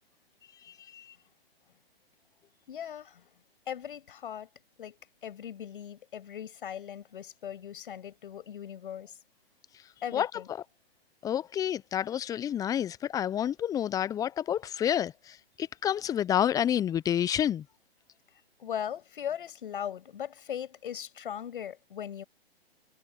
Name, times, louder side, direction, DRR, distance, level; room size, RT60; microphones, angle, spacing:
voice 1, 2.7-3.2 3.7-4.5 4.8-5.0 5.2-9.2 10.0-10.5 18.6-22.2, left 9 dB, 55° left, 7.1 m, -39 dB
voice 2, 10.1-10.6 11.2-17.6, left 10 dB, 10° left, 0.8 m, -29 dB
figure-of-eight pair, 125°, 31 cm